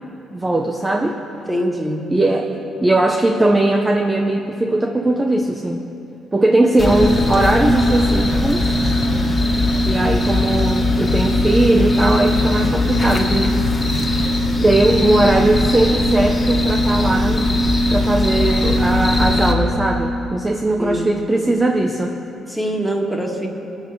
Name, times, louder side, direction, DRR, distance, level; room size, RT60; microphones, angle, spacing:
voice 1, 0.3-1.2 2.1-5.8 6.3-8.8 9.9-13.6 14.6-17.5 17.9-22.2, right 2 dB, 20° right, 2 dB, 0.8 m, -19 dB
voice 2, 1.5-2.0 20.8-21.1 22.5-23.5, equal, 5° right, 1 dB, 1.8 m, -23 dB
sound 1, 6.8-19.5, left 1 dB, 25° left, 1.7 m, -18 dB
19.5 x 7.3 x 4.9 m, 2.9 s
cardioid pair, 90°, 0 cm